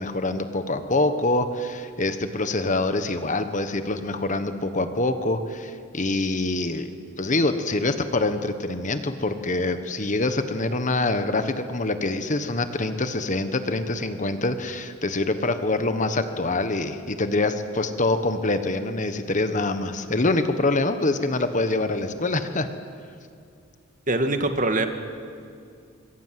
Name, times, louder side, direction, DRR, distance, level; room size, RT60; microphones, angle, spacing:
voice 1, 0.0-6.9 7.2-22.7, left 2 dB, 40° left, 9 dB, 1.4 m, -25 dB
voice 2, 24.1-24.9, right 2 dB, 40° right, 7 dB, 1.8 m, -23 dB
25.5 x 23.5 x 7.7 m, 2.3 s
head